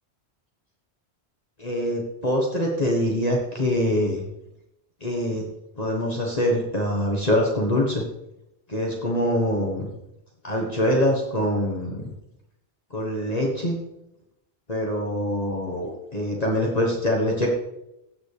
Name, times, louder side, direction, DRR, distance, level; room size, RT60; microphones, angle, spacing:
voice 1, 1.6-4.2 5.0-5.4 5.8-8.0 8.7-9.9 10.4-12.1 12.9-13.8 14.7-17.5, left 1 dB, 40° left, -1 dB, 1.6 m, -24 dB
15.5 x 7.3 x 3.5 m, 0.85 s
omnidirectional pair, 1.1 m